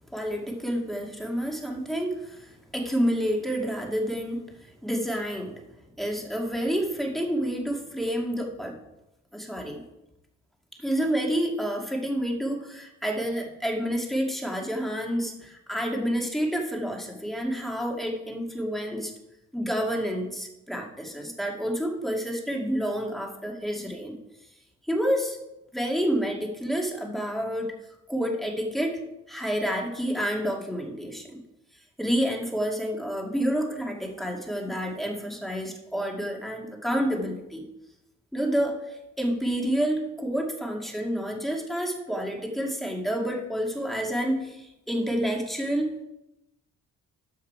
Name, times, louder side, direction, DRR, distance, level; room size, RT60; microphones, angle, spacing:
voice 1, 0.1-5.6 6.0-8.8 9.3-9.8 10.8-19.1 19.5-24.2 24.9-25.4 25.7-27.7 28.1-29.0 29.3-31.4 32.0-37.6 38.3-46.0, equal, ahead, 0 dB, 2.3 m, -29 dB
13.0 x 5.8 x 4.7 m, 0.91 s
cardioid pair, 90°, 30 cm